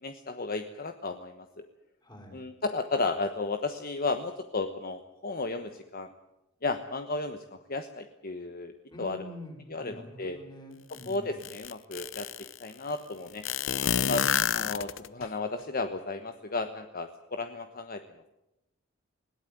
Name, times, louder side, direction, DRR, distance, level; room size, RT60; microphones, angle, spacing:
voice 1, 0.0-1.6 2.3-6.1 6.6-9.2 9.7-10.4 11.1-12.3 12.6-13.4 14.0-14.2 14.5-18.0, left 3 dB, 45° left, 8 dB, 1.2 m, -34 dB
voice 2, 2.0-2.4 8.9-11.4, left 1 dB, 20° left, 3 dB, 5.4 m, -46 dB
sound 1, 10.9-11.0 11.4-12.5 13.4-15.3, left 8 dB, 70° left, 0.8 m, -29 dB
20.5 x 18.0 x 9.3 m, 0.93 s
head